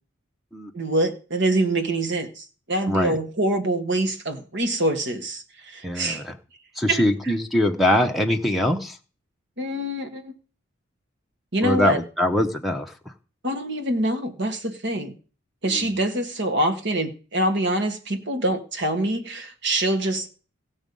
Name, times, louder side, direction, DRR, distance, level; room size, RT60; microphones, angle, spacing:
voice 1, 0.7-6.2 6.9-7.0 9.6-10.3 11.5-12.0 13.4-15.1 15.6-20.3, right 1 dB, 55° right, 7 dB, 1.6 m, -25 dB
voice 2, 2.9-3.2 5.8-6.4 6.8-9.0 11.6-12.9 15.6-15.9, left 1 dB, ahead, 6 dB, 0.8 m, -23 dB
16.0 x 6.3 x 5.4 m, 0.39 s
head